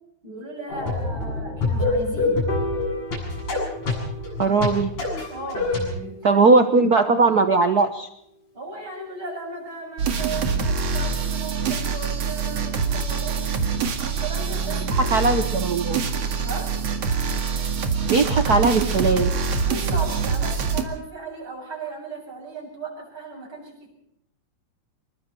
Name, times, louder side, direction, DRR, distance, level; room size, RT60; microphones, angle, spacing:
voice 1, 0.2-2.5 5.3-6.5 8.5-15.3 16.4-16.8 19.6-24.0, right 3 dB, 40° right, 1 dB, 8.7 m, -36 dB
sound 1, 0.7-5.9, left 3 dB, 75° left, 9.5 m, -26 dB
Piano, 2.5-8.8, left 2 dB, 55° left, 7.1 m, -38 dB
voice 2, 4.4-4.9 6.2-8.1 14.9-16.0 18.1-19.3, right 3 dB, 80° right, 8 dB, 0.8 m, -19 dB
sound 2, 10.0-20.8, right 5 dB, 55° right, 3.0 m, -25 dB
26.0 x 22.5 x 4.5 m, 0.76 s
omnidirectional pair, 3.5 m